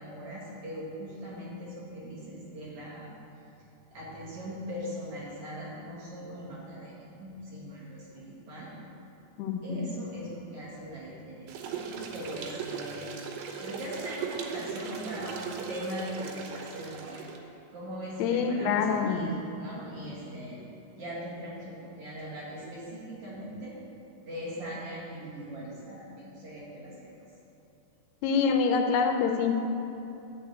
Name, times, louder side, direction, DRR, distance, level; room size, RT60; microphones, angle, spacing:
voice 1, 0.0-3.1 3.9-8.7 9.6-13.1 13.6-17.2 17.7-20.6 21.0-23.7 24.2-27.1, equal, 45° right, -7 dB, 2.6 m, -40 dB
voice 2, 9.4-9.9 18.2-19.3 28.2-29.7, left 5 dB, 80° left, 5 dB, 2.6 m, -26 dB
sound 1, 11.5-17.4, right 6 dB, 90° right, 2.9 m, -38 dB
12.0 x 4.2 x 7.9 m, 2.9 s
omnidirectional pair, 4.7 m